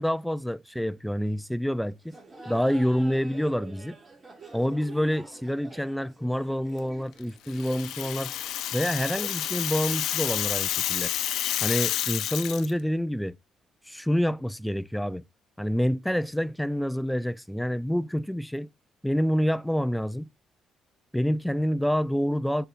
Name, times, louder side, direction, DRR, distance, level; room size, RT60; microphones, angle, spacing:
voice 1, 0.0-2.2 2.5-4.0 4.5-8.3 8.7-11.1 11.6-13.3 13.9-15.2 15.6-18.7 19.0-20.3 21.1-22.7, equal, ahead, 0.4 m, -27 dB
Laughter, 2.0-9.5, right 3 dB, 40° right, 5.7 m, -48 dB
Rattle (instrument), 7.5-12.7, left 12 dB, 85° left, 0.5 m, -29 dB
12.5 x 5.7 x 2.5 m
cardioid pair, 90°, 0 cm